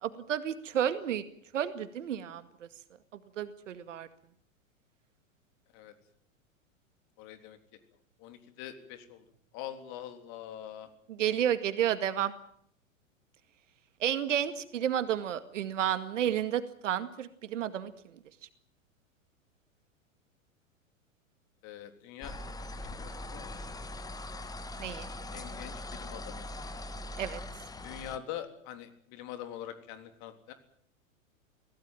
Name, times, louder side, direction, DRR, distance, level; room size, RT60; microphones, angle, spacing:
voice 1, 0.0-1.2 1.5-2.7 3.4-4.1 11.1-12.3 14.0-17.9 24.8-25.1 27.2-27.4, right 10 dB, 65° right, 11 dB, 2.2 m, -31 dB
voice 2, 7.2-7.6 8.2-9.2 9.5-10.9 21.6-22.3 22.8-23.6 25.3-26.5 27.8-30.5, left 11 dB, 40° left, 8 dB, 3.6 m, -44 dB
sound 1, 22.2-28.2, left 1 dB, 10° left, 1.6 m, -41 dB
24.5 x 17.0 x 9.2 m, 0.66 s
figure-of-eight pair, 100°, 40 cm